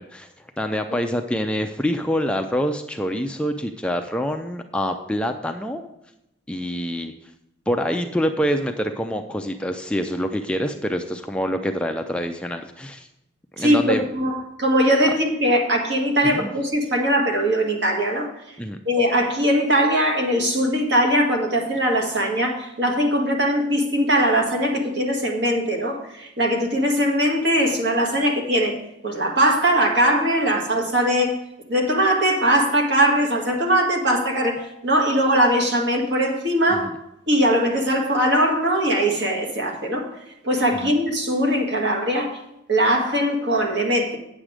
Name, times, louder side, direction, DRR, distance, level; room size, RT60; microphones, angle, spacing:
voice 1, 0.0-5.8 6.5-7.1 7.7-13.1 13.5-14.1 16.2-16.5 18.6-18.8 36.7-36.8 40.7-40.9, equal, 5° left, 5 dB, 0.4 m, -26 dB
voice 2, 13.6-18.3 18.8-28.8 29.0-31.4 31.7-36.9 37.3-40.1 40.4-42.4 42.7-44.2, equal, 60° right, 1 dB, 1.8 m, -21 dB
9.0 x 7.4 x 4.9 m, 0.87 s
head